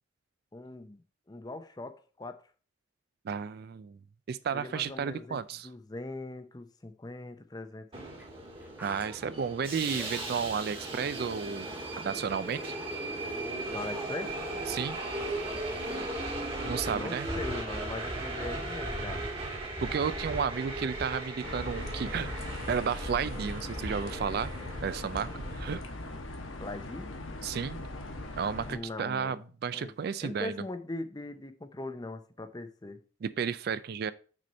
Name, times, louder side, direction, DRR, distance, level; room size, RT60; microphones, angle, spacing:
voice 1, 0.5-1.0 1.3-2.4 4.5-7.9 13.7-14.3 16.9-19.3 26.6-27.1 28.7-29.4 29.7-29.9 30.2-33.0, left 2 dB, 20° left, 0.6 m, -40 dB
voice 2, 3.2-4.0 4.3-5.7 8.8-11.7 12.0-12.8 14.7-15.0 16.6-17.3 19.8-22.3 22.7-24.5 24.8-25.8 27.4-27.8 28.4-30.6 33.2-34.1, right 6 dB, 50° right, 0.3 m, -32 dB
Subway metro underground, 7.9-25.8, right 2 dB, 30° right, 1.5 m, -37 dB
sound 1, 8.2-8.3 8.6-9.5 9.9-16.1, right 1 dB, 10° right, 1.1 m, -49 dB
sound 2, 21.4-28.8, left 2 dB, 90° left, 1.1 m, -40 dB
6.2 x 4.3 x 5.2 m
head